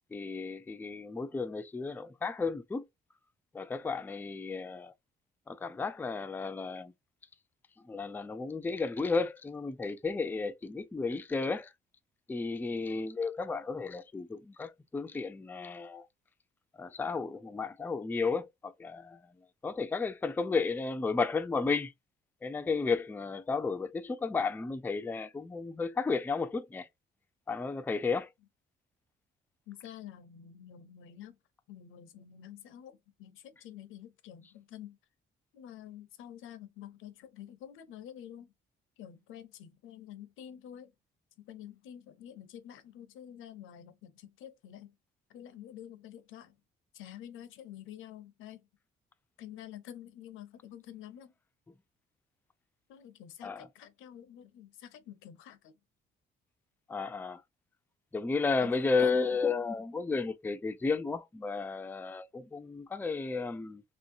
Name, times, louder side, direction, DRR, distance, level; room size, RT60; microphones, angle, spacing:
voice 1, 0.1-2.9 3.5-4.9 5.5-6.9 7.9-11.7 12.3-16.1 16.8-19.2 19.6-21.9 22.4-26.9 27.5-28.3 53.4-53.7 56.9-57.4 58.1-63.8, left 4 dB, 10° left, 0.3 m, -33 dB
voice 2, 29.7-31.4 31.7-35.0 35.5-38.5 39.0-40.9 41.4-44.9 45.3-46.6 46.9-48.6 49.4-51.3 52.9-55.7 58.6-59.4, left 10 dB, 85° left, 0.6 m, -49 dB
3.0 x 2.7 x 2.6 m
cardioid pair, 90°, 20 cm